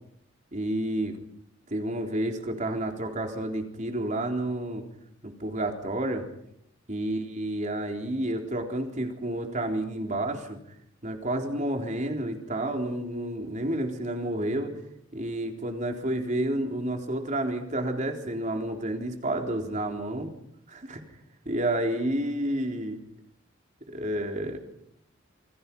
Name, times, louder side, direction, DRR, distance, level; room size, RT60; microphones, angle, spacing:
voice 1, 0.5-1.2 1.7-4.8 5.2-6.2 6.9-10.6 11.0-14.8 15.1-20.3 20.7-21.0 21.5-23.0 23.9-24.6, right 1 dB, 35° right, 3 dB, 4.0 m, -30 dB
28.5 x 23.5 x 5.6 m, 0.75 s
head